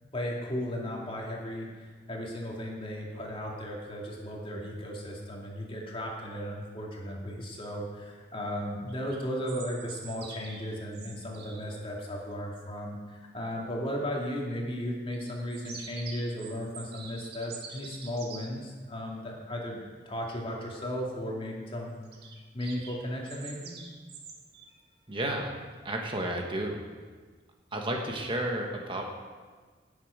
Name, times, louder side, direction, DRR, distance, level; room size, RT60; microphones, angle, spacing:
voice 1, 0.1-19.8 20.1-22.0 22.5-23.8, equal, 30° left, -1 dB, 2.3 m, -35 dB
sound 1, 8.9-11.8 15.1-18.4 22.0-24.8, right 5 dB, 65° right, 1.8 m, -46 dB
voice 2, 25.1-25.5 25.8-26.8 27.7-29.1, right 1 dB, 30° right, 1 dB, 1.3 m, -32 dB
17.5 x 7.5 x 5.0 m, 1.5 s
head